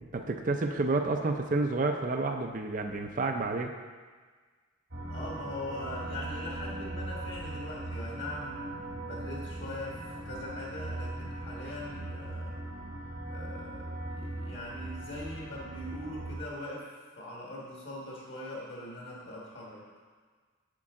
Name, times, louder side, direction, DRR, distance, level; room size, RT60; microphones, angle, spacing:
voice 1, 0.0-3.7, right 3 dB, 40° right, 4 dB, 0.5 m, -30 dB
sound 1, 4.9-16.4, right 1 dB, 65° right, 1.4 m, -39 dB
voice 2, 5.1-12.6 13.3-19.9, left 1 dB, 55° left, -4 dB, 1.5 m, -41 dB
8.4 x 7.6 x 3.7 m, 1.5 s
head